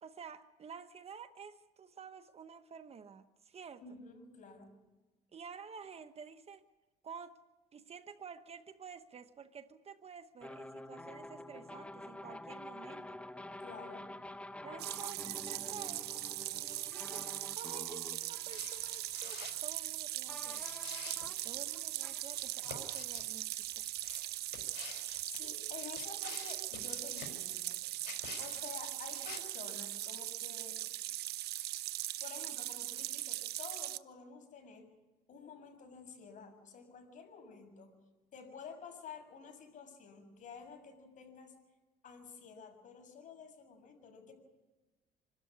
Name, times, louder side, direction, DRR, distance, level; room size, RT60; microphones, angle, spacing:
voice 1, 0.0-3.8 5.3-6.6 7.0-7.4 7.7-13.2 14.6-16.1 16.9-20.7 21.4-23.8, right 6 dB, 35° right, 9 dB, 1.2 m, -51 dB
voice 2, 3.8-4.8 13.6-14.1 25.3-27.8 28.4-30.9 32.2-34.9 35.3-38.0 38.3-41.6 42.0-44.3, left 5 dB, 50° left, 3 dB, 7.0 m, -51 dB
sound 1, 10.4-19.6 20.3-23.0, left 1 dB, 5° left, 0.9 m, -49 dB
sound 2, 14.8-34.0, right 15 dB, 75° right, 0.7 m, -40 dB
sound 3, 18.5-19.7 20.4-21.6 22.3-23.3 24.0-25.2 25.7-27.4 28.0-28.7 29.0-29.4, left 10 dB, 80° left, 4.7 m, -49 dB
26.0 x 13.5 x 9.7 m, 1.1 s
cardioid pair, 110°, 17 cm